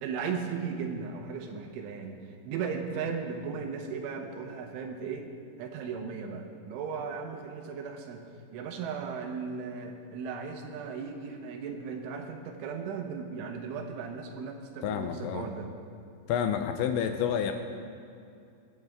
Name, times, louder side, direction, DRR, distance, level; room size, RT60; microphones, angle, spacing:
voice 1, 0.0-2.2 2.5-5.3 5.6-8.3 8.5-15.7, right 6 dB, 80° right, 4 dB, 3.5 m, -36 dB
voice 2, 14.8-15.5 16.3-17.5, left 8 dB, 80° left, 6 dB, 2.8 m, -29 dB
25.0 x 9.0 x 3.6 m, 2.4 s
omnidirectional pair, 5.6 m